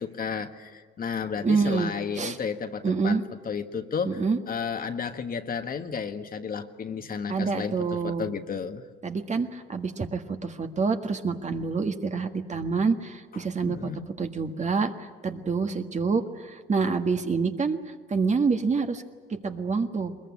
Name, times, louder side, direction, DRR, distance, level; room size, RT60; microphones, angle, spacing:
voice 1, 0.0-3.2 3.4-8.8 13.7-14.1, left 6 dB, 45° left, 7 dB, 1.5 m, -32 dB
voice 2, 1.4-2.4 2.8-3.2 4.0-4.4 7.3-8.3 9.0-13.9 14.2-17.8 18.1-19.0 19.4-20.1, right 4 dB, 35° right, 6 dB, 1.7 m, -27 dB
22.0 x 21.5 x 9.8 m, 1.5 s
cardioid pair, 90°, 20 cm